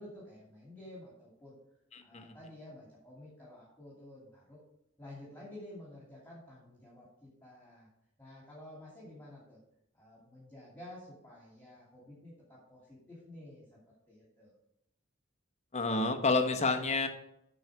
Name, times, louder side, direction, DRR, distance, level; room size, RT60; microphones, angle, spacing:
voice 1, 0.0-1.6 2.0-4.6 5.0-7.9 8.2-9.6 9.9-13.8 14.1-14.5, left 1 dB, 10° left, -6 dB, 2.5 m, -51 dB
voice 2, 1.9-2.3 15.7-17.1, left 3 dB, 35° left, 6 dB, 1.0 m, -29 dB
8.9 x 5.6 x 4.8 m, 0.80 s
head